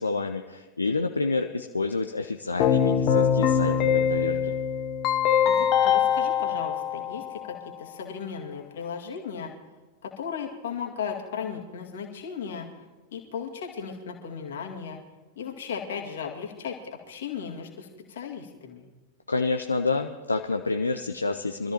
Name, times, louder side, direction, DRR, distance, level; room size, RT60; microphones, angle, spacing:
voice 1, 0.0-4.5 19.3-21.7, left 3 dB, 80° left, 6 dB, 0.5 m, -28 dB
Keyboard (musical), 2.6-7.6, left 8 dB, 40° left, 1.3 m, -23 dB
voice 2, 5.5-9.5 10.0-12.7 13.1-15.0 15.4-18.9, left 6 dB, 60° left, 1 dB, 2.2 m, -36 dB
25.0 x 13.5 x 3.0 m, 1.3 s
figure-of-eight pair, 90°, 0 cm